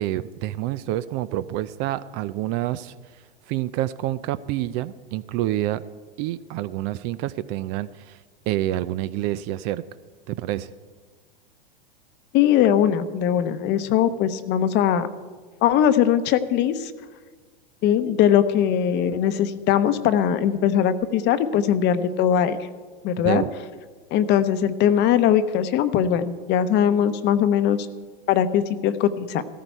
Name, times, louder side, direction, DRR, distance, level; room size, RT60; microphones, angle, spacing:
voice 1, 0.0-2.9 3.5-5.8 6.2-8.2 8.5-9.8 10.3-10.7 23.2-23.5, right 14 dB, 40° right, 16 dB, 0.4 m, -27 dB
voice 2, 12.3-15.1 15.6-16.9 17.8-22.6 23.0-23.4 24.1-27.8 28.3-29.4, left 9 dB, 35° left, 12 dB, 0.9 m, -20 dB
15.5 x 14.0 x 4.6 m, 1.4 s
hypercardioid pair, 115°, 30 cm